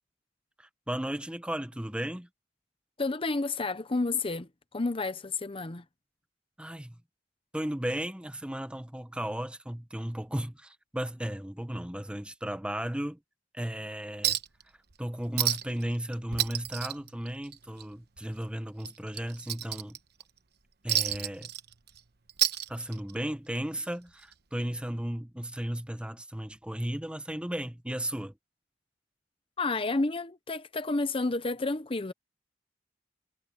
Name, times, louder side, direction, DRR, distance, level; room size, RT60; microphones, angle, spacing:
voice 1, 0.6-2.3 6.6-7.0 7.5-13.2 13.5-14.4 15.0-20.0 20.8-21.5 22.7-28.3, right 1 dB, 5° right, 0.9 m, -35 dB
voice 2, 3.0-5.8 29.6-32.1, left 3 dB, 30° left, 0.9 m, -30 dB
Chink clink, 14.2-14.6 14.9-15.0 15.4-15.8 16.1-17.8 18.2-18.3 18.8-20.2 20.9-22.0 22.3-23.2 24.3-24.4, right 11 dB, 60° right, 1.1 m, -30 dB
head